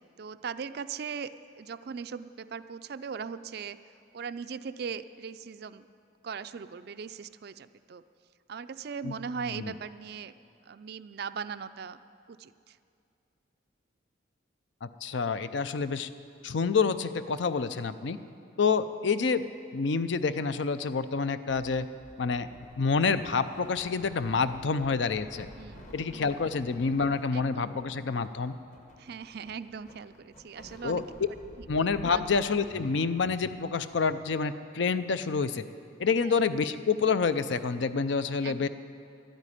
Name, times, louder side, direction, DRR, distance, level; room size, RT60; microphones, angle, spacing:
voice 1, 0.2-1.3 1.6-3.8 4.1-5.9 6.2-8.0 8.5-10.3 10.7-12.0 12.3-12.8 25.6-26.4 27.3-27.8 29.0-31.0 31.6-31.7 32.1-32.3 36.2-36.3 38.4-38.7, right 6 dB, 50° right, 13 dB, 0.4 m, -39 dB
voice 2, 14.8-16.1 16.4-18.2 18.6-19.4 19.7-21.9 22.2-22.5 22.8-25.5 25.9-28.6 30.8-31.0 31.7-35.7 36.0-38.7, left 5 dB, 65° left, 12 dB, 0.5 m, -28 dB
sound 1, 21.5-34.1, equal, 40° left, 1.3 m, -51 dB
12.0 x 9.0 x 9.9 m, 2.4 s
head